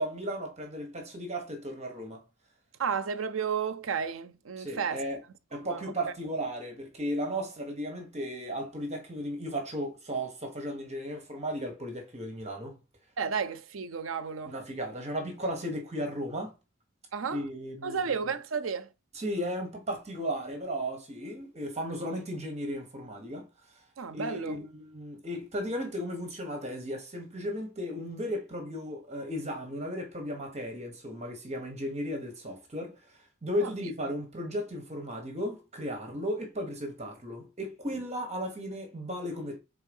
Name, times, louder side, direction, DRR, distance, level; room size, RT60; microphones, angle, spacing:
voice 1, 0.0-2.2 4.6-5.2 5.5-12.8 14.4-16.5 17.3-18.1 19.1-23.5 24.1-39.6, equal, 35° right, 1.6 m, -35 dB
voice 2, 2.8-5.0 5.6-5.8 13.2-14.5 17.1-17.4 17.8-18.9 24.0-24.6 33.6-33.9, right 6 dB, 75° right, 0.6 m, -32 dB
4.7 x 4.0 x 5.4 m
head